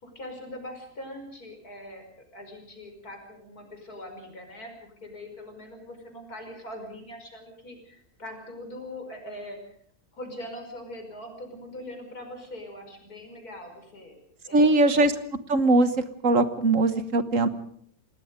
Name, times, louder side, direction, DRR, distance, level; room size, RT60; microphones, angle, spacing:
voice 1, 0.0-2.0 2.3-9.6 10.1-14.1 14.5-15.0, left 1 dB, 80° left, 4 dB, 5.9 m, -42 dB
voice 2, 14.5-15.1 15.5-17.5, right 2 dB, 60° right, 11 dB, 1.7 m, -21 dB
28.0 x 19.0 x 5.2 m, 0.62 s
omnidirectional pair, 1.6 m